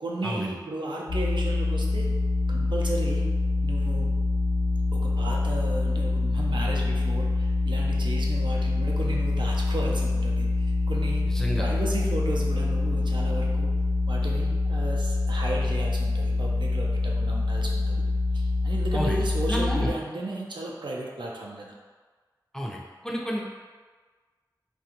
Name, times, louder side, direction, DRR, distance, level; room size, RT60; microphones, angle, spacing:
voice 1, 0.0-2.1 2.5-3.3 3.6-4.1 4.9-11.2 11.6-13.7 14.1-18.0 18.3-21.8, right 2 dB, 85° right, -2 dB, 0.4 m, -34 dB
sound 1, 1.1-19.9, left 2 dB, 65° left, 0.4 m, -25 dB
voice 2, 11.3-11.7 18.9-19.2 19.5-19.9 22.5-23.4, equal, 5° left, -3 dB, 0.4 m, -30 dB
2.4 x 2.2 x 2.8 m, 1.4 s
wide cardioid pair, 50°, 8 cm